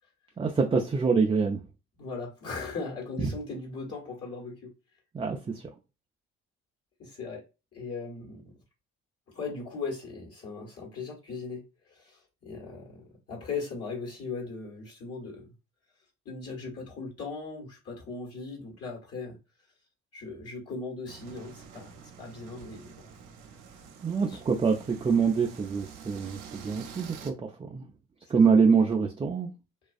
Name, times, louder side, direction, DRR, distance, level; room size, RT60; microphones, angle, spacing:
voice 1, 0.4-1.6 3.2-3.3 5.1-5.7 24.0-27.9 28.3-29.5, right 5 dB, 15° right, 0.3 m, -25 dB
voice 2, 2.0-4.7 7.0-7.4 7.7-8.4 9.3-15.5 16.2-19.4 20.1-23.0 23.7-23.8 24.3-24.4 28.3-28.4, left 4 dB, 45° left, 1.2 m, -38 dB
sound 1, 21.1-27.3, right 7 dB, 65° right, 0.6 m, -47 dB
2.4 x 2.3 x 2.4 m
hypercardioid pair, 55°, 35 cm